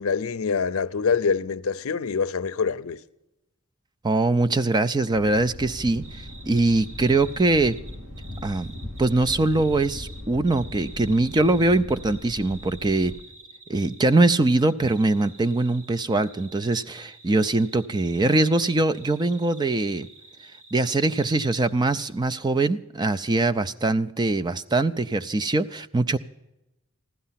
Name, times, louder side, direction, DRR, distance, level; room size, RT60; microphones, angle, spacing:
voice 1, 0.0-3.0, left 5 dB, 70° left, 0.6 m, -25 dB
voice 2, 4.0-7.8 8.4-8.7 9.0-13.1 13.7-20.1 20.7-26.2, right 2 dB, 20° right, 0.4 m, -22 dB
Thunder, 5.1-13.2, left 1 dB, 80° right, 3.1 m, -39 dB
sound 1, 6.0-21.7 22.0-22.1, right 2 dB, 65° right, 2.4 m, -49 dB
15.5 x 12.0 x 5.7 m
head